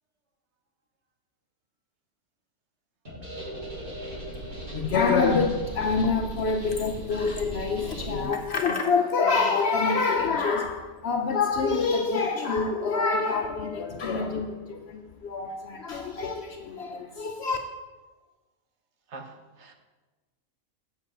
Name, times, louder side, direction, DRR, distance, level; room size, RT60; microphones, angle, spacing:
sound 1, 3.0-8.2, right 2 dB, 35° right, 2.3 m, -37 dB
voice 1, 4.4-17.6, left 4 dB, 60° left, 0.7 m, -26 dB
voice 2, 19.1-19.7, right 3 dB, 55° right, 1.1 m, -44 dB
8.1 x 7.6 x 4.3 m
omnidirectional pair, 1.5 m